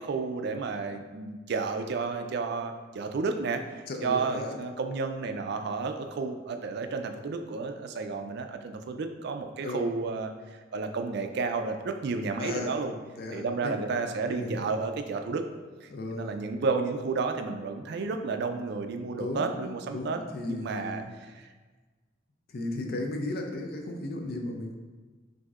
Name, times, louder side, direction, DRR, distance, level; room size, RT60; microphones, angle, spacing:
voice 1, 0.0-12.9 13.3-15.4 15.8-20.2 20.5-21.5 22.8-23.0, right 4 dB, 60° right, 6 dB, 0.4 m, -32 dB
voice 2, 3.9-4.6 9.6-9.9 12.4-12.8 13.2-13.7 14.4-14.6 15.9-16.4 19.2-21.1 22.5-24.7, left 2 dB, 55° left, 3 dB, 0.5 m, -35 dB
6.1 x 2.7 x 2.4 m, 1.4 s
head